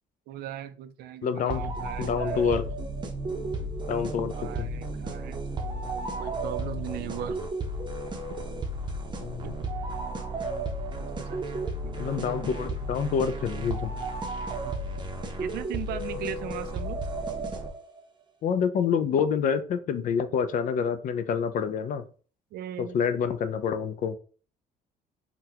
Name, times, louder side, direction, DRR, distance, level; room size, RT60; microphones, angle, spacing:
voice 1, 0.3-2.5 4.2-5.4 6.2-7.4 8.3-8.4 9.4-9.7 11.0-12.2 14.5-14.8 15.4-17.0 22.5-23.0, right 10 dB, 70° right, 12 dB, 0.4 m, -39 dB
voice 2, 1.2-1.6 2.0-2.7 3.9-4.7 9.2-9.6 12.0-13.9 18.4-22.0 22.8-24.2, left 7 dB, 50° left, 10 dB, 0.4 m, -27 dB
sound 1, 1.5-18.0, right 2 dB, 25° right, 0.6 m, -33 dB
3.8 x 2.2 x 2.8 m, 0.40 s
cardioid pair, 110°, 17 cm